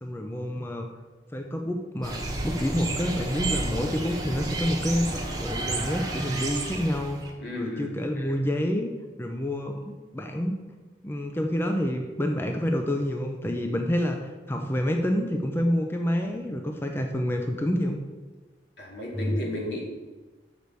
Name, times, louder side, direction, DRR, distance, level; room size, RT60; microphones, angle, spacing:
voice 1, 0.0-0.9 1.3-5.1 5.4-8.9 9.2-9.8 10.1-10.6 11.0-18.0 19.1-19.4, equal, 15° left, 3 dB, 0.5 m, -28 dB
sound 1, 2.0-7.3, right 2 dB, 20° right, 1.0 m, -31 dB
voice 2, 7.4-8.0 18.8-19.8, left 1 dB, 75° left, -3 dB, 2.4 m, -33 dB
6.8 x 4.6 x 6.8 m, 1.3 s
head